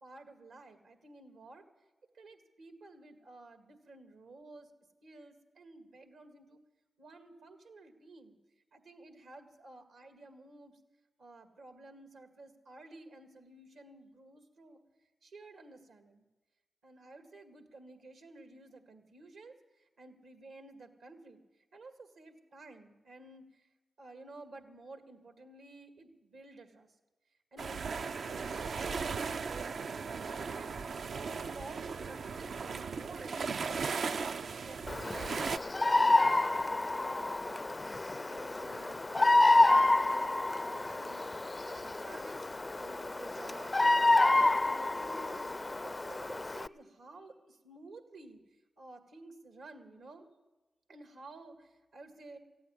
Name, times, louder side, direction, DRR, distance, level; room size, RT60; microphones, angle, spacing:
voice 1, 0.0-1.7 2.1-4.7 5.0-6.6 7.0-8.4 8.7-10.8 11.2-14.8 15.2-16.2 16.8-21.4 21.7-23.7 24.0-26.9 27.5-30.1 30.4-30.8 31.0-33.9 34.5-42.4 42.7-43.8 44.2-45.5 45.8-48.4 48.8-50.3 50.9-52.4, right 2 dB, 85° right, 5 dB, 1.9 m, -52 dB
sound 1, 27.6-35.6, right 5 dB, 70° right, 0.4 m, -37 dB
Bird vocalization bird call bird song, 34.9-46.7, left 2 dB, 30° left, 0.4 m, -28 dB
15.0 x 8.5 x 9.8 m, 1.1 s
cardioid pair, 50°, 0 cm